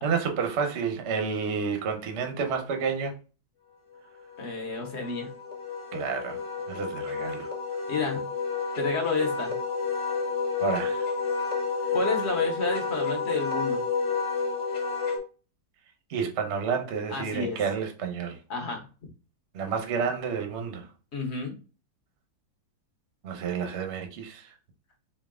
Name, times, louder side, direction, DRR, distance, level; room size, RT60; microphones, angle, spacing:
voice 1, 0.0-3.2 5.9-6.4 6.7-7.5 10.6-11.1 16.1-18.4 19.5-20.9 23.2-24.5, right 6 dB, 50° right, 0.8 m, -30 dB
Wind instrument woodwind instrument, 4.2-15.2, left 5 dB, 20° left, 1.1 m, -30 dB
voice 2, 4.4-5.3 7.9-8.3 8.7-9.6 11.9-13.8 17.1-17.6 18.5-18.8 21.1-21.6, left 3 dB, 45° left, 0.9 m, -30 dB
4.5 x 2.6 x 3.6 m
omnidirectional pair, 2.1 m